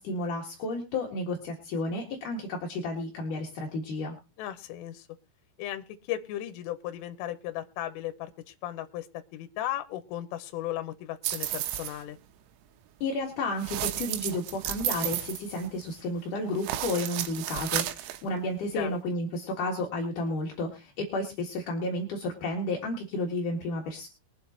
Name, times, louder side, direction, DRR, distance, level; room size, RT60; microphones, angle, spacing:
voice 1, 0.0-4.1 13.0-24.1, left 2 dB, 55° left, -1 dB, 2.6 m, -32 dB
voice 2, 4.4-5.1 5.6-9.1 9.3-12.2 18.7-19.0, left 13 dB, 80° left, 9 dB, 3.3 m, -36 dB
sound 1, 11.2-12.0 13.6-16.0 16.6-18.2, right 13 dB, 85° right, 3.6 m, -33 dB
23.0 x 7.8 x 2.9 m, 0.28 s
omnidirectional pair, 5.9 m